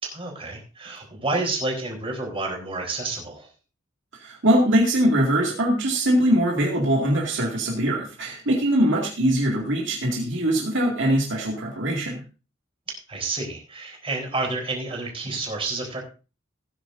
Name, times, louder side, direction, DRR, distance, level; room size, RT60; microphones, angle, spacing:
voice 1, 0.0-3.5 12.9-16.0, right 3 dB, 30° right, 0 dB, 4.0 m, -30 dB
voice 2, 4.2-12.2, right 1 dB, 65° right, -1 dB, 2.3 m, -22 dB
17.0 x 9.8 x 2.6 m, 0.33 s
head